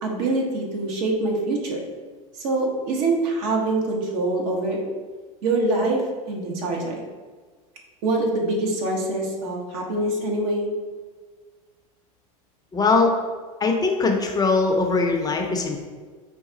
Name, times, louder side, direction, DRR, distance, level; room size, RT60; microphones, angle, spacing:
voice 1, 0.0-1.8 2.4-4.8 5.4-7.0 8.0-10.7, right 2 dB, 60° right, 0 dB, 1.0 m, -24 dB
voice 2, 12.7-13.1 13.6-15.9, left 3 dB, 20° left, 2 dB, 0.5 m, -21 dB
3.9 x 2.3 x 3.8 m, 1.5 s
hypercardioid pair, 100°, 19 cm